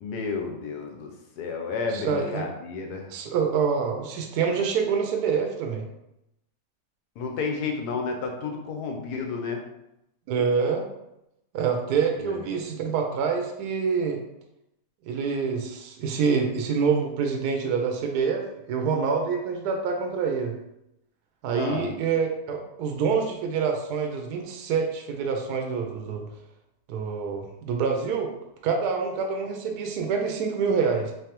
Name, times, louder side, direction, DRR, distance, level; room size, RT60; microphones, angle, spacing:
voice 1, 0.0-3.1 7.2-9.6 12.2-12.4 21.5-21.9, left 4 dB, 75° left, 3 dB, 1.2 m, -31 dB
voice 2, 1.9-2.4 3.1-5.8 10.3-10.8 11.5-14.2 15.1-20.5 21.4-26.2 26.9-28.3 28.6-31.1, right 6 dB, 75° right, 3 dB, 1.1 m, -26 dB
3.9 x 3.2 x 2.9 m, 0.87 s
omnidirectional pair, 1.8 m